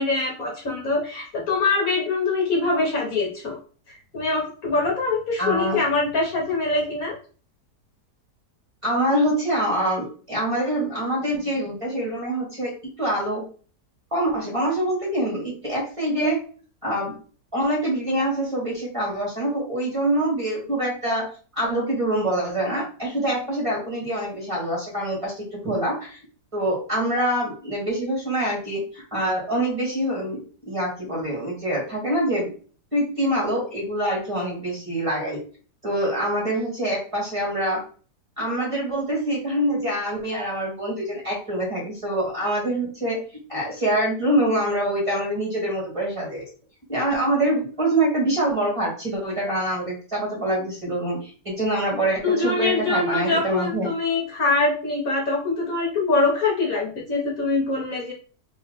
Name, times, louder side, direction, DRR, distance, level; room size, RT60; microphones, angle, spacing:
voice 1, 0.0-3.6 3.9-7.2 52.2-58.1, left 3 dB, 60° left, -2 dB, 1.2 m, -24 dB
voice 2, 5.4-5.8 8.8-12.7 13.0-13.4 14.1-16.4 16.8-17.1 17.5-21.2 21.5-26.2 26.5-32.5 32.9-35.4 35.8-37.8 38.4-43.2 43.5-46.4 46.9-53.9, right 1 dB, 20° right, -4 dB, 1.5 m, -25 dB
3.0 x 2.9 x 3.9 m, 0.40 s
omnidirectional pair, 1.8 m